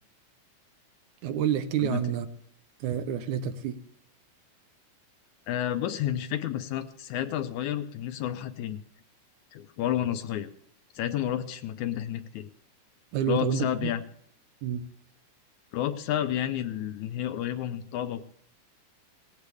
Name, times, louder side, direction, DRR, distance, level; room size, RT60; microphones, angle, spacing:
voice 1, 1.2-2.3 2.8-3.8 13.1-13.9 14.6-14.8, right 8 dB, 75° right, 10 dB, 2.2 m, -28 dB
voice 2, 5.5-8.8 9.5-10.5 11.0-12.5 13.3-14.0 15.7-18.3, left 11 dB, 75° left, 10 dB, 2.0 m, -30 dB
18.5 x 16.5 x 3.5 m, 0.66 s
omnidirectional pair, 3.7 m